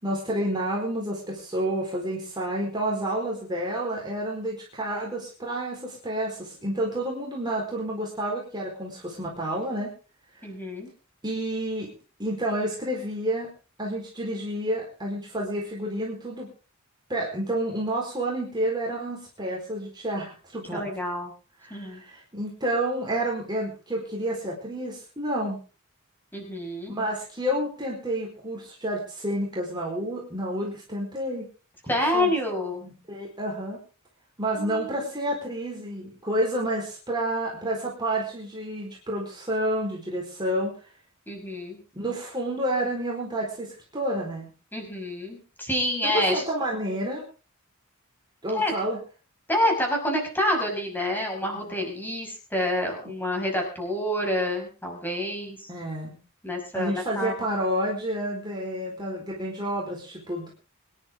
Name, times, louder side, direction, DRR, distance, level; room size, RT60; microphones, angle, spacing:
voice 1, 0.0-9.9 10.3-10.5 11.2-11.9 12.2-13.5 13.8-16.5 17.1-20.8 21.6-25.6 26.9-31.5 31.9-32.3 32.8-33.8 34.4-40.7 41.9-44.5 46.0-47.2 48.4-49.0 51.5-51.7 55.7-56.2 56.7-60.5, right 1 dB, 20° right, -3 dB, 4.3 m, -29 dB
voice 2, 10.4-10.9 20.7-21.3 21.7-22.0 26.3-26.9 31.9-32.8 34.5-35.1 41.3-41.8 44.7-46.4 48.5-48.7 49.5-55.7 56.4-57.3, left 1 dB, 10° left, 1 dB, 6.0 m, -28 dB
25.0 x 11.0 x 3.7 m, 0.35 s
head